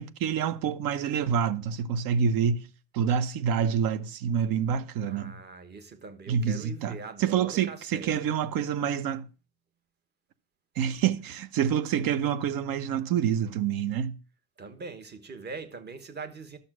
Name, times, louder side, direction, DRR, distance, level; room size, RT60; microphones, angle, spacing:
voice 1, 0.0-2.7 2.9-5.4 6.3-9.3 10.8-14.2, right 8 dB, 60° right, 1.0 m, -27 dB
voice 2, 5.0-8.2 14.6-16.6, right 4 dB, 25° right, 1.2 m, -42 dB
11.5 x 6.8 x 6.2 m
cardioid pair, 175°, 39 cm